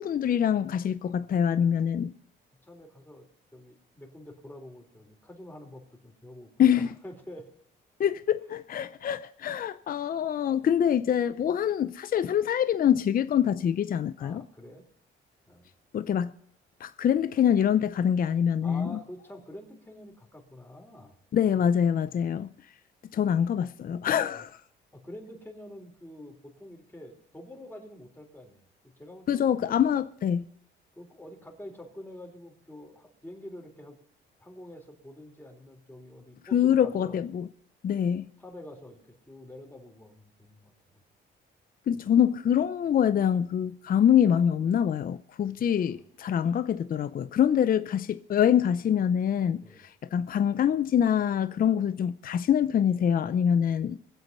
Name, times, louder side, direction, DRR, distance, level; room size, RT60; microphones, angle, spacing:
voice 1, 0.0-2.1 6.6-6.9 8.0-14.4 15.9-16.3 16.8-19.0 21.3-22.5 23.1-24.5 29.3-30.4 36.5-37.5 37.8-38.3 41.9-49.6 50.1-54.0, left 9 dB, 45° left, 0.6 m, -25 dB
voice 2, 2.6-7.5 14.2-14.8 15.5-15.7 18.6-21.2 21.6-21.7 24.3-24.4 24.9-29.5 31.0-34.0 34.4-37.2 38.4-40.7 45.6-46.1 49.6-49.9, left 1 dB, 10° left, 3.8 m, -47 dB
22.0 x 8.1 x 5.5 m
cardioid pair, 90°, 20 cm